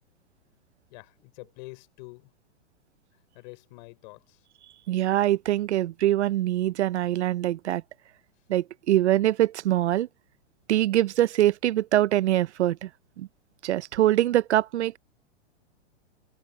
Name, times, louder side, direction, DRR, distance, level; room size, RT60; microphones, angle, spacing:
voice 1, 0.9-2.3 3.3-4.4, left 25 dB, 40° left, 5.7 m, -46 dB
voice 2, 4.9-7.8 8.5-10.1 10.7-12.9 13.2-13.3 13.6-15.0, right 13 dB, 70° right, 0.8 m, -23 dB
hypercardioid pair, 155°, 35 cm